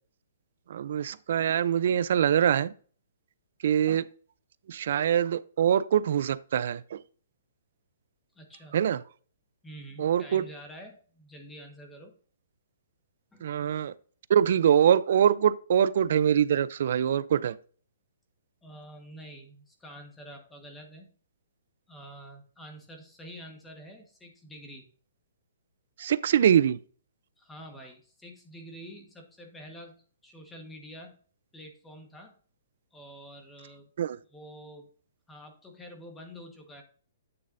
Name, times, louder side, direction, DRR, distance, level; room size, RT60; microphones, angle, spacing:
voice 1, 0.7-2.7 3.6-4.0 4.7-7.0 8.7-9.0 10.0-10.4 13.4-13.9 14.3-17.6 26.0-26.8 34.0-34.2, right 9 dB, 55° right, 0.5 m, -24 dB
voice 2, 8.3-8.8 9.6-12.2 13.3-13.4 18.6-21.1 21.9-24.9 27.4-31.2 31.5-32.4 32.9-33.9 34.3-34.9 35.3-36.8, equal, 5° left, 1.4 m, -47 dB
8.9 x 6.7 x 2.6 m
hypercardioid pair, 160°, 0 cm